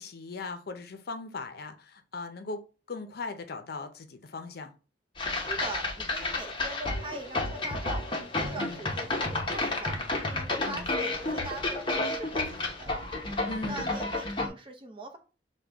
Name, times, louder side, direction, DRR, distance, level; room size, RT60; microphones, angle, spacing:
voice 1, 0.0-2.6 2.9-4.7 8.5-8.8 10.7-10.9 13.4-14.0, left 3 dB, 60° left, 0.6 m, -39 dB
sound 1, 5.2-14.5, left 2 dB, 30° left, 0.8 m, -31 dB
voice 2, 5.3-8.1 8.4-10.0 10.3-13.1 13.7-15.2, right 2 dB, 30° right, 0.7 m, -41 dB
6.5 x 2.2 x 3.4 m
head